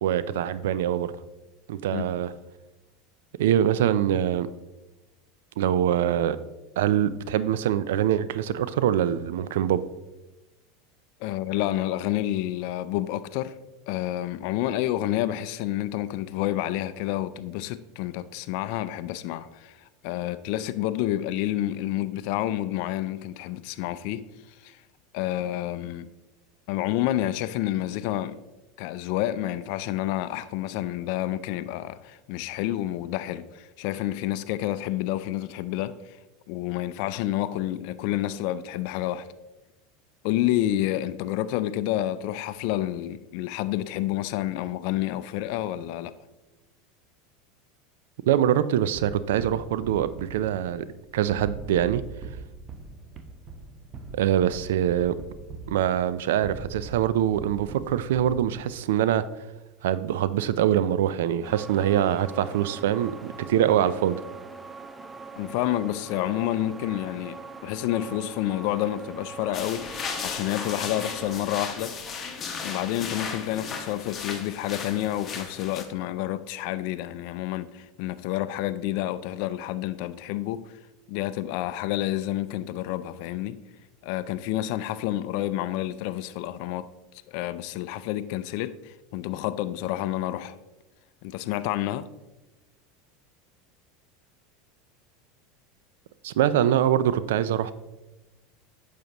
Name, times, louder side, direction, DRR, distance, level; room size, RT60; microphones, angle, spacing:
voice 1, 0.0-1.1 1.7-2.3 3.4-4.5 5.6-6.4 6.8-9.8 48.3-50.9 51.1-52.0 54.1-55.1 55.7-59.2 59.8-64.2 96.2-97.7, right 10 dB, 75° right, 0.4 m, -24 dB
voice 2, 11.2-13.5 13.9-19.8 20.0-24.3 24.6-24.8 25.1-26.1 26.7-28.4 28.8-36.0 36.5-39.3 40.2-46.1 65.4-69.9 70.2-71.9 72.6-80.7 81.1-83.6 84.0-86.9 87.3-90.5 91.2-92.1, left 14 dB, 65° left, 0.4 m, -29 dB
sound 1, 48.9-58.9, right 4 dB, 40° right, 0.9 m, -42 dB
sound 2, 61.4-71.4, right 4 dB, 15° right, 0.5 m, -42 dB
sound 3, 69.5-75.8, left 5 dB, 30° left, 1.2 m, -35 dB
9.1 x 6.6 x 3.0 m
hypercardioid pair, 95°, 0 cm